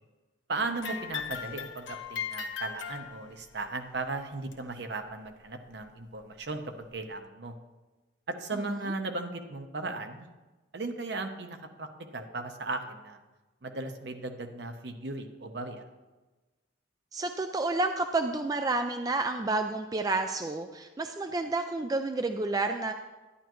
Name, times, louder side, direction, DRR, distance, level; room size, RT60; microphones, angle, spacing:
voice 1, 0.5-7.6 8.3-10.3 10.7-13.2 13.6-15.8, right 3 dB, 60° right, 6 dB, 0.9 m, -36 dB
sound 1, 0.7-3.6 4.5-4.6 5.5-5.6 6.4-6.5, left 7 dB, 75° left, 1.0 m, -38 dB
voice 2, 8.5-8.8 17.1-22.9, right 2 dB, 20° right, 6 dB, 0.3 m, -30 dB
11.0 x 10.0 x 3.1 m, 1.2 s
head